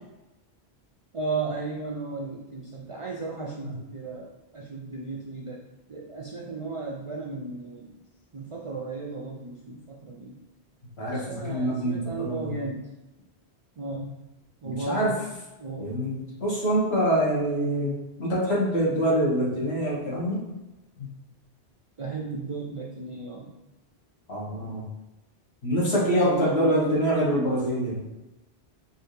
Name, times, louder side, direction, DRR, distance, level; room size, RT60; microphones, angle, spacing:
voice 1, 1.1-5.6 5.9-7.9 8.3-10.4 11.1-12.9 13.8-14.1 14.6-15.1 15.6-15.9 22.0-23.5 26.2-27.0, right 4 dB, 60° right, -1 dB, 0.3 m, -35 dB
voice 2, 11.0-12.6 14.6-15.1 15.8-20.4 21.0-21.1 24.3-24.9 25.6-28.0, equal, 80° left, -4 dB, 1.4 m, -25 dB
4.6 x 2.7 x 3.1 m, 1.0 s
omnidirectional pair, 1.1 m